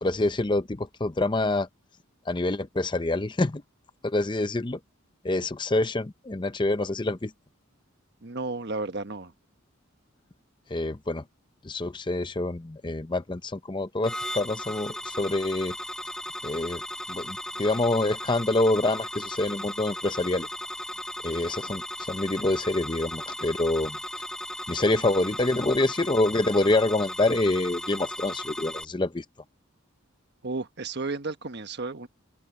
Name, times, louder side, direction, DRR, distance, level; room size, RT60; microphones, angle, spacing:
voice 1, 0.0-1.7 2.3-3.6 4.0-4.8 5.2-7.3 10.7-11.2 11.6-15.7 16.4-16.8 17.1-20.5 21.2-24.0 24.7-29.2, left 2 dB, 25° left, 0.6 m, -26 dB
voice 2, 8.2-9.3 30.4-32.1, right 3 dB, 55° right, 1.3 m, -33 dB
sound 1, 14.0-28.8, equal, 5° left, 1.9 m, -36 dB
open air
head